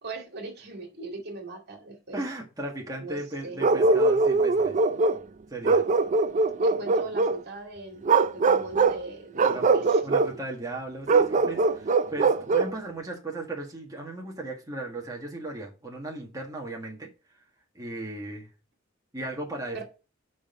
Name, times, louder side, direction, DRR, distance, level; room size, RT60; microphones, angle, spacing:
voice 1, 0.0-2.2 3.0-3.9 6.6-10.0 19.7-19.8, right 2 dB, 55° right, 2.1 m, -40 dB
voice 2, 2.1-4.8 5.5-5.8 9.5-9.8 10.0-17.1 17.7-18.5 19.1-19.8, right 2 dB, 20° right, 1.6 m, -36 dB
Bark, 3.6-5.2 5.6-7.4 8.0-9.0 9.4-10.3 11.1-12.7, right 3 dB, 40° right, 0.5 m, -22 dB
6.9 x 5.3 x 5.3 m
head